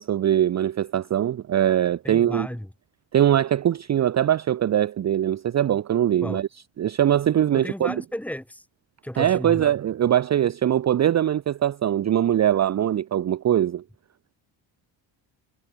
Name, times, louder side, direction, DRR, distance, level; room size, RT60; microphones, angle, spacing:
voice 1, 0.0-2.5 3.1-6.5 6.8-7.9 9.2-13.8, right 11 dB, 35° right, 0.5 m, -22 dB
voice 2, 2.0-2.7 6.2-6.4 7.5-8.6 9.0-9.7, equal, 5° left, 1.8 m, -33 dB
cardioid pair, 100°, 47 cm